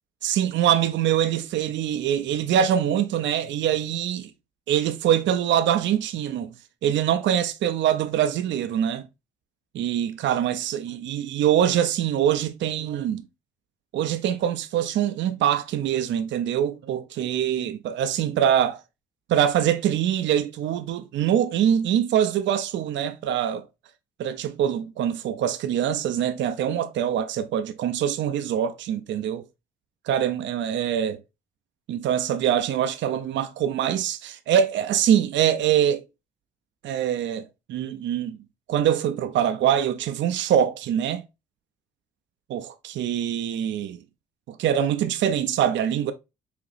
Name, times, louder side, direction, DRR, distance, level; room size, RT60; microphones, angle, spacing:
voice 1, 0.2-4.3 4.7-6.5 6.8-9.0 9.7-13.2 13.9-18.8 19.3-23.7 24.2-29.4 30.1-31.2 31.9-36.0 36.8-38.4 38.7-41.2 42.5-44.0 44.5-46.1, right 10 dB, 70° right, 0.5 m, -24 dB
5.0 x 2.9 x 2.5 m
cardioid pair, 90°, 20 cm